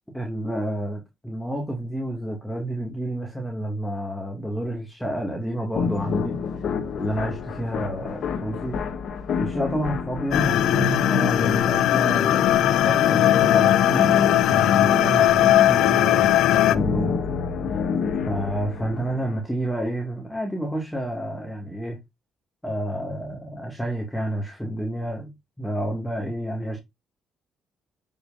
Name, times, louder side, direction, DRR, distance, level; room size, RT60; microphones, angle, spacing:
voice 1, 0.1-6.4 7.0-8.8 9.4-14.0 14.5-17.2 17.7-17.9 18.3-22.0 22.6-25.3 25.6-26.8, right 1 dB, ahead, 2.3 m, -30 dB
sound 1, 5.7-19.4, left 5 dB, 70° left, 1.4 m, -28 dB
sound 2, 10.3-16.8, left 13 dB, 85° left, 0.4 m, -19 dB
7.7 x 5.6 x 2.6 m
cardioid pair, 90°, 0 cm